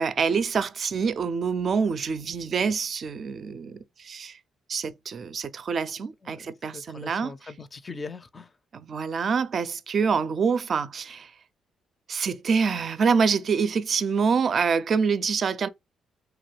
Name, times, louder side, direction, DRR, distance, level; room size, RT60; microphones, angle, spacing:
voice 1, 0.0-4.4 4.7-7.3 8.7-11.3 12.1-15.7, right 5 dB, 50° right, 0.4 m, -26 dB
voice 2, 6.2-8.5, left 4 dB, 30° left, 0.4 m, -41 dB
3.0 x 2.3 x 3.2 m
cardioid pair, 90°, 0 cm